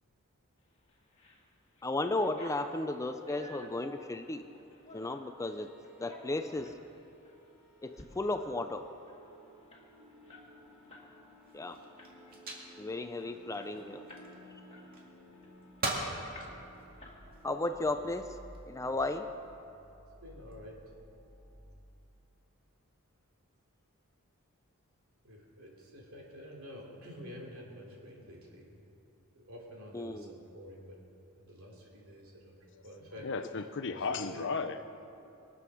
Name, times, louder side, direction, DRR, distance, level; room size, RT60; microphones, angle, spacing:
sound 1, 0.9-1.4 1.7-5.3 5.8-6.8 7.2-7.4 7.8-8.1 8.4-8.5 8.8-11.1 11.4-11.6 12.0-12.4 12.9-13.0 13.2-14.3 14.7-15.9 16.3-16.7 17.0-17.6, left 1 dB, 30° left, 2.0 m, -52 dB
voice 1, 1.8-4.4 4.9-5.7 6.0-6.7 7.8-8.8 11.5-11.8 12.8-14.0 17.4-18.4 18.7-19.3 29.9-30.3, left 2 dB, 15° left, 8 dB, 0.4 m, -34 dB
sound 2, 5.3-21.9, equal, 5° right, 2.4 m, -56 dB
sound 3, 11.4-14.5 14.9-15.5 15.8-16.2 16.7-17.5 18.2-18.6, right 2 dB, 40° right, 2.1 m, -40 dB
voice 2, 20.2-20.8 25.2-28.8 29.3-31.0 31.4-33.3 33.9-34.6, equal, 65° right, -2 dB, 3.1 m, -49 dB
voice 3, 33.2-34.9, left 4 dB, 55° left, 9 dB, 0.7 m, -35 dB
23.0 x 7.8 x 6.3 m, 2.7 s
head